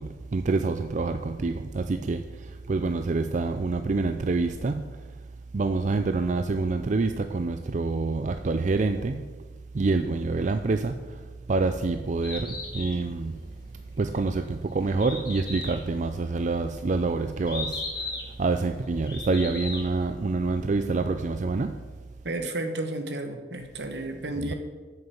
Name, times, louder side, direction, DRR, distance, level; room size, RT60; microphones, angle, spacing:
voice 1, 0.0-5.0 5.5-9.3 9.7-11.2 11.5-13.4 14.0-18.1 18.4-21.8 24.4-24.5, right 3 dB, 45° right, 8 dB, 0.4 m, -27 dB
Bird, 12.0-20.0, left 3 dB, 25° left, 2.4 m, -38 dB
voice 2, 22.2-24.5, right 2 dB, 70° right, 6 dB, 1.2 m, -32 dB
8.9 x 6.6 x 7.0 m, 1.4 s
head